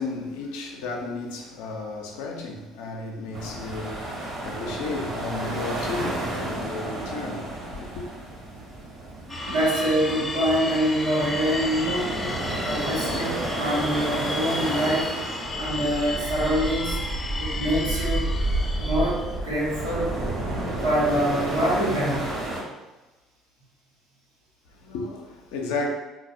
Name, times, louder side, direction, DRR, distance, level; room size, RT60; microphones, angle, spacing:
voice 1, 0.0-8.0 24.8-25.9, left 3 dB, 70° left, 0.5 m, -33 dB
sound 1, 3.3-22.6, right 1 dB, 50° right, 0.9 m, -31 dB
sound 2, 9.3-19.4, left 2 dB, 20° left, 0.6 m, -33 dB
voice 2, 9.5-12.2 12.7-15.2 15.6-17.0 17.4-18.3 18.8-20.2 20.8-22.3, equal, 90° right, 0.9 m, -25 dB
3.9 x 2.2 x 2.5 m
hypercardioid pair, 55°, 0 cm